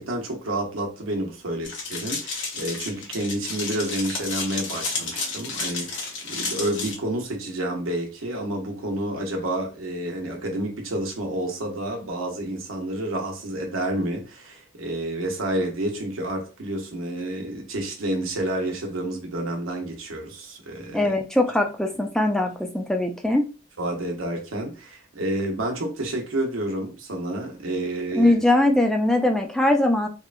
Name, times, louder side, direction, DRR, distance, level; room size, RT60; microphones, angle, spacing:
voice 1, 0.0-21.1 23.8-28.4, right 1 dB, 85° right, 0.8 m, -29 dB
sound 1, 1.6-6.9, left 4 dB, 65° left, 0.8 m, -31 dB
voice 2, 20.9-23.5 28.1-30.1, left 1 dB, 5° left, 0.3 m, -21 dB
2.9 x 2.3 x 2.4 m
head